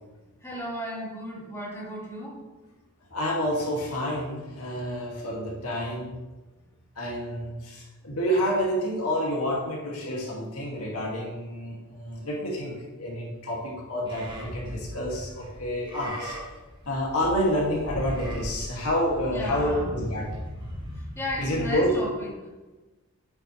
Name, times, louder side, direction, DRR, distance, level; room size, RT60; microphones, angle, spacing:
voice 1, 0.4-2.3 19.3-19.9 21.2-22.3, left 1 dB, 15° left, -6 dB, 2.7 m, -34 dB
voice 2, 3.1-6.1 7.0-16.4 16.9-20.3 21.4-21.9, equal, 90° left, -3 dB, 2.4 m, -28 dB
Livestock farm animals working animals, 14.1-21.9, equal, 20° right, 1.7 m, -38 dB
10.0 x 8.2 x 3.3 m, 1.2 s
head